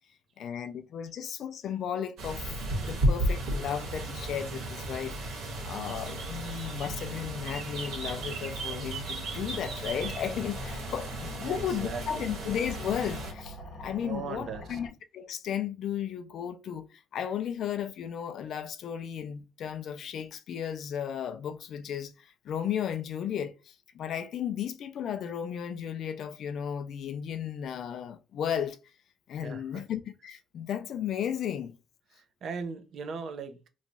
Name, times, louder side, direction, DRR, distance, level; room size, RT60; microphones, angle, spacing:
voice 1, 0.4-2.4 2.8-28.8 29.3-31.8, left 9 dB, 50° left, 0.4 m, -34 dB
sound 1, 2.2-13.3, right 1 dB, 65° right, 1.5 m, -34 dB
sound 2, 9.9-14.9, left 1 dB, 35° left, 0.9 m, -44 dB
voice 2, 11.4-12.4 14.0-14.8 29.4-29.8 32.1-33.7, right 5 dB, 45° right, 0.5 m, -39 dB
3.0 x 2.3 x 3.9 m
cardioid pair, 175°, 0 cm